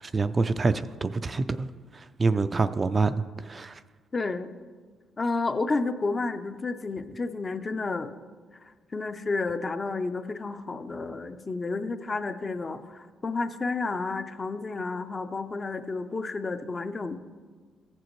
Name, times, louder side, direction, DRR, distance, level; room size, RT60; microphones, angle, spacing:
voice 1, 0.0-1.7 1.9-3.8, right 3 dB, 30° right, 11 dB, 0.3 m, -26 dB
voice 2, 4.1-4.5 5.2-8.2 8.9-17.2, left 3 dB, 30° left, 9 dB, 0.6 m, -31 dB
14.5 x 7.5 x 3.1 m, 1.5 s
cardioid pair, 90°, 0 cm